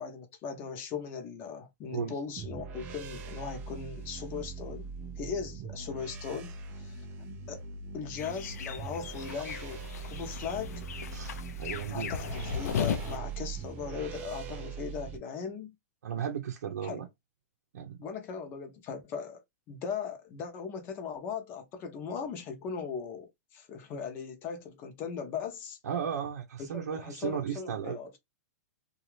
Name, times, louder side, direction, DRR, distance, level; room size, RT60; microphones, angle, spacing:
voice 1, 0.0-4.9 5.2-7.0 7.5-7.6 7.9-10.9 11.9-15.7 16.8-17.0 18.0-19.4 19.7-25.8 26.7-28.2, left 6 dB, 25° left, 0.7 m, -38 dB
sound 1, 2.4-15.2, right 5 dB, 20° right, 0.4 m, -42 dB
sound 2, 8.2-13.2, left 7 dB, 75° left, 0.5 m, -36 dB
voice 2, 11.1-12.1 16.0-17.1 17.7-18.0 25.8-28.0, right 8 dB, 85° right, 0.6 m, -35 dB
2.7 x 2.3 x 3.1 m
hypercardioid pair, 165°, 9 cm